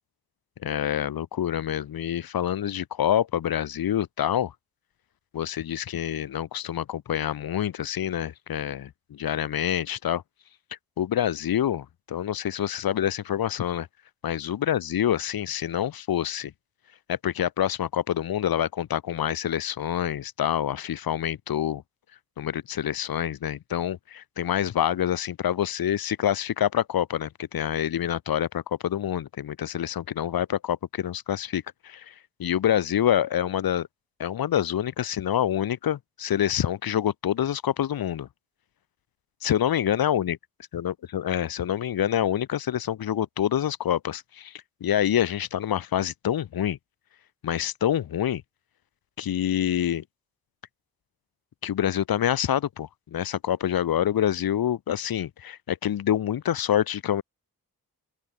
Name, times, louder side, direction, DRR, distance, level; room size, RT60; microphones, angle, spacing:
voice 1, 0.6-4.5 5.3-10.2 11.0-13.9 14.2-16.5 17.1-21.8 22.4-32.1 32.4-33.9 34.2-38.3 39.4-40.4 40.7-46.8 47.4-48.4 49.2-50.0 51.6-57.2, left 10 dB, 70° left, 0.8 m, -27 dB
open air
cardioid pair, 60°, 38 cm